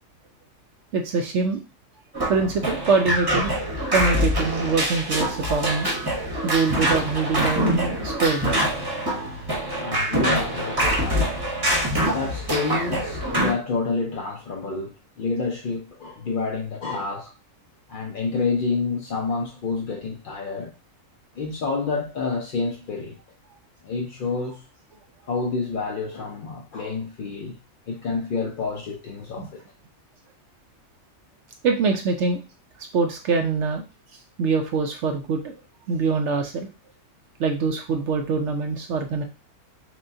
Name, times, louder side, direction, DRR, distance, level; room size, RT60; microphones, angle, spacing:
voice 1, 0.9-1.6 2.3-3.5 3.9-5.9 6.4-8.6 23.5-23.6 29.4-29.5 31.6-32.4 32.9-33.8 34.4-35.6 35.9-36.7 37.4-39.2, right 4 dB, 65° right, 0.7 m, -24 dB
sound 1, 2.1-13.5, equal, 20° right, 0.8 m, -25 dB
voice 2, 9.7-11.3 12.0-17.3 17.9-20.7 21.4-23.2 23.8-24.7 25.3-27.6 27.9-29.6, left 4 dB, 70° left, 0.5 m, -28 dB
6.0 x 2.2 x 2.6 m
omnidirectional pair, 1.5 m